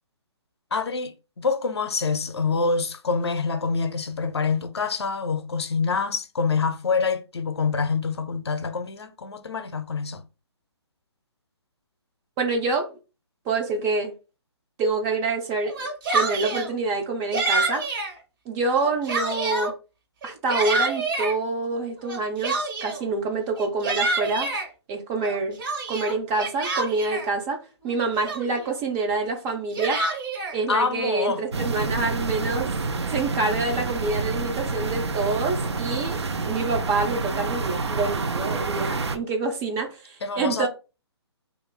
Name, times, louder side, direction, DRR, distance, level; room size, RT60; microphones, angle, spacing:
voice 1, 0.7-10.2 30.7-31.4 40.2-40.7, left 4 dB, 70° left, 0.5 m, -26 dB
voice 2, 12.4-13.0 13.5-14.1 14.8-17.9 18.5-19.7 20.2-24.5 24.9-25.6 25.9-30.0 30.5-32.7 33.1-36.2 36.5-40.7, right 3 dB, 15° right, 0.4 m, -27 dB
Yell, 15.6-16.7 17.3-18.1 18.6-19.7 20.2-21.3 22.1-23.0 23.6-24.7 25.2-27.3 27.9-28.0 28.2-28.7 29.5-30.5, right 3 dB, 50° right, 1.1 m, -27 dB
sound 1, 31.5-39.2, right 3 dB, 75° right, 0.5 m, -28 dB
2.5 x 2.3 x 3.7 m
figure-of-eight pair, 135°, 14 cm